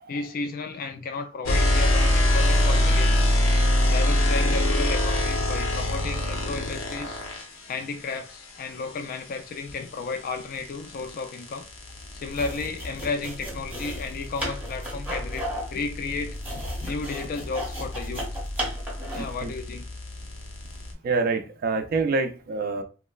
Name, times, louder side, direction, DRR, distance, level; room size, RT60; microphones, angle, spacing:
voice 1, 0.1-3.3 3.9-7.2 7.7-11.7 12.1-18.2 19.1-19.9, left 4 dB, 45° left, 0.3 m, -33 dB
sound 1, 1.5-7.5 9.9-20.9, left 1 dB, 85° left, 0.6 m, -26 dB
sound 2, 12.3-19.3, equal, 5° right, 0.7 m, -35 dB
voice 2, 19.1-19.5 21.0-22.8, right 3 dB, 45° right, 0.3 m, -26 dB
3.0 x 2.0 x 2.3 m
head